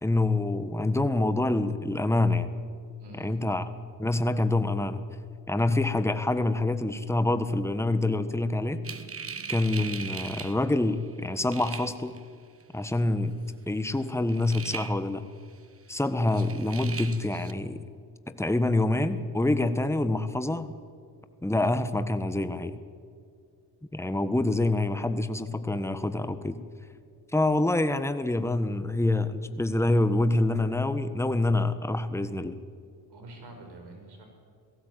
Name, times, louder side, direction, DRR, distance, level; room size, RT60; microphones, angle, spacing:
voice 1, 0.0-2.5 3.2-3.6 4.0-5.0 5.5-8.8 9.5-12.2 12.7-13.3 13.7-15.2 15.9-17.8 18.3-20.7 21.4-22.8 23.9-26.6 27.3-32.6, left 2 dB, 5° left, 10 dB, 1.4 m, -26 dB
voice 2, 3.0-3.4 33.1-34.2, right 1 dB, 65° right, 4 dB, 5.5 m, -46 dB
sound 1, 8.8-11.2 11.5-12.2 12.6-12.7 14.3-15.1 15.4-15.5 16.3-17.5, right 5 dB, 30° right, 1.4 m, -39 dB
18.0 x 15.5 x 9.1 m, 2.3 s
supercardioid pair, 60°, 43 cm